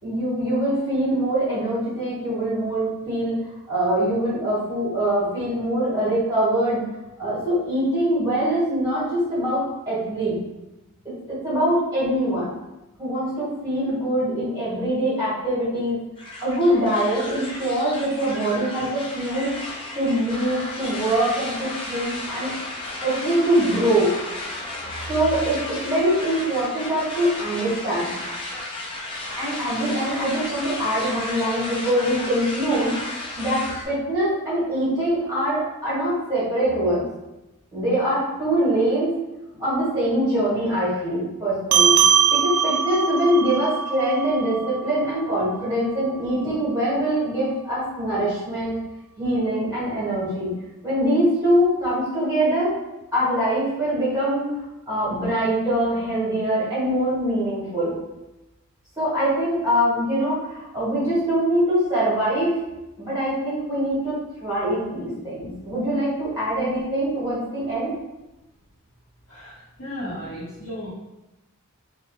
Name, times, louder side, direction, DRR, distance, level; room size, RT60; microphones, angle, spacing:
voice 1, 0.0-3.3 3.7-6.9 7.2-10.4 11.0-12.5 13.0-16.0 16.4-19.6 19.9-22.5 23.0-24.2 25.1-28.2 29.4-37.0 37.7-39.1 39.6-42.0 42.3-48.7 49.2-50.5 50.8-52.8 53.1-54.5 54.9-57.9 59.0-62.6 63.0-67.9, right 1 dB, 15° right, -10 dB, 1.1 m, -23 dB
sound 1, 16.2-33.9, left 2 dB, 25° left, 0.3 m, -33 dB
sound 2, 41.7-46.5, right 8 dB, 70° right, 0.3 m, -22 dB
voice 2, 69.3-70.9, equal, 65° left, -11 dB, 0.8 m, -35 dB
2.2 x 2.0 x 2.9 m, 0.99 s
head